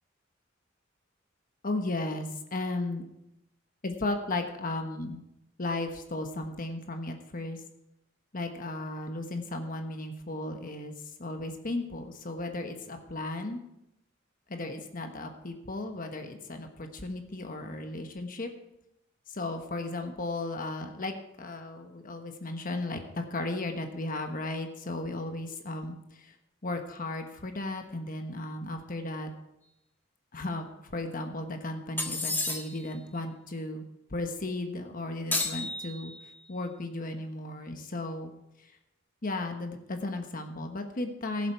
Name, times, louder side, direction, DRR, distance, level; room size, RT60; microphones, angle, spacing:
voice 1, 1.6-3.0 3.8-5.2 5.6-7.6 8.3-10.9 11.2-13.6 14.5-18.5 19.3-26.3 26.6-29.3 30.3-33.8 34.1-36.1 36.5-38.3 38.6-38.7 39.2-41.5, left 2 dB, 45° left, 5 dB, 1.2 m, -35 dB
sound 1, 32.0-32.9 35.3-36.4, left 2 dB, 10° left, 1.5 m, -32 dB
16.5 x 7.2 x 4.7 m, 0.86 s
head